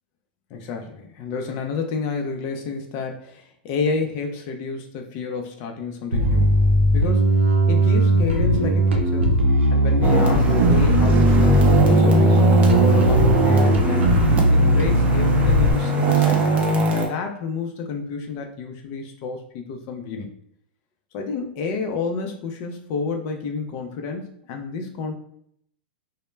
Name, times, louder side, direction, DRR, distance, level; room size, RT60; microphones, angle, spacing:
voice 1, 0.5-6.6 6.9-7.4 7.7-9.3 9.7-12.4 12.8-16.4 16.9-20.3 21.1-25.2, left 4 dB, 40° left, 4 dB, 0.4 m, -30 dB
Bass guitar, 6.1-15.7, equal, 90° right, 0.5 m, -18 dB
sound 1, 10.0-17.1, right 3 dB, 25° right, 0.5 m, -20 dB
2.1 x 2.0 x 3.2 m, 0.69 s
hypercardioid pair, 120°, 6 cm